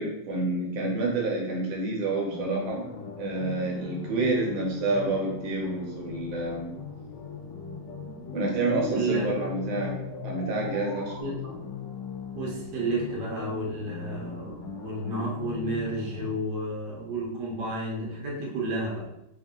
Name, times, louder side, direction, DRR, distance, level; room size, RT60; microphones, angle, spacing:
voice 1, 0.0-2.9 3.2-6.7 8.3-9.9 10.2-11.3, right 2 dB, 85° right, -1 dB, 1.6 m, -28 dB
sound 1, 2.2-16.4, left 6 dB, 75° left, 1.2 m, -39 dB
sound 2, 6.7-11.2, equal, 45° left, 0.5 m, -42 dB
voice 2, 8.9-9.3 11.2-11.6 12.3-19.1, right 2 dB, 60° right, -3 dB, 1.5 m, -31 dB
3.6 x 2.6 x 3.6 m, 0.84 s
omnidirectional pair, 2.2 m